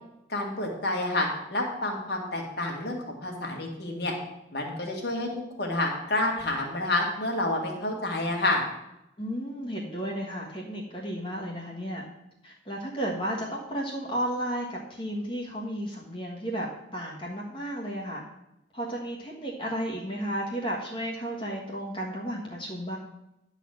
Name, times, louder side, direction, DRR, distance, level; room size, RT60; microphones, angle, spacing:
voice 1, 0.3-4.1 4.5-5.3 5.6-8.6, left 2 dB, 55° left, 1 dB, 2.0 m, -29 dB
voice 2, 9.2-12.0 12.4-18.2 18.7-23.0, equal, 25° left, -2 dB, 1.4 m, -33 dB
11.0 x 4.1 x 7.6 m, 0.87 s
head